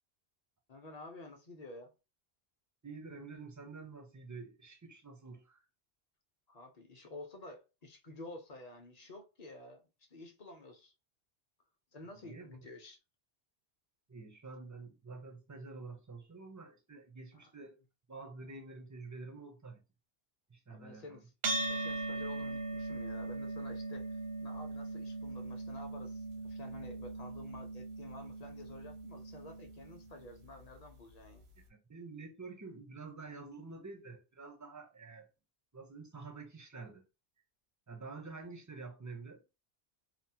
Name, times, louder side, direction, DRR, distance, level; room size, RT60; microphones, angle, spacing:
voice 1, 0.7-1.9 6.5-10.9 11.9-13.0 17.3-17.5 20.7-21.2 21.7-31.5, left 2 dB, 45° left, 0.6 m, -51 dB
voice 2, 2.8-5.6 12.2-12.6 14.1-17.8 18.1-19.8 20.5-21.2 31.7-35.3 35.7-37.0 37.9-39.4, right 3 dB, 30° right, 0.3 m, -48 dB
sound 1, 21.4-30.1, right 2 dB, 80° right, 1.0 m, -39 dB
2.9 x 2.0 x 2.7 m
omnidirectional pair, 1.1 m